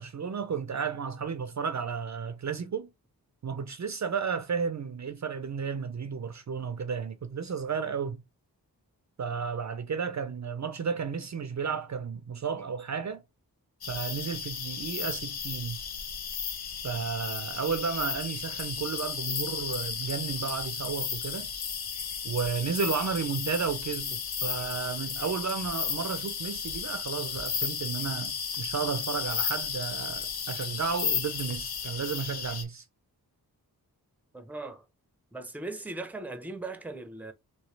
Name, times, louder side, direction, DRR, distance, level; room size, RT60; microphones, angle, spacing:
voice 1, 0.0-2.9 3.4-8.2 9.2-13.2 13.9-15.8 16.8-21.5 22.2-32.8, right 6 dB, 50° right, 0.5 m, -33 dB
sound 1, 13.8-32.6, left 7 dB, 75° left, 0.8 m, -34 dB
voice 2, 34.3-34.8 35.3-37.3, right 2 dB, 5° right, 0.6 m, -38 dB
3.1 x 3.0 x 3.2 m
wide cardioid pair, 80°, 38 cm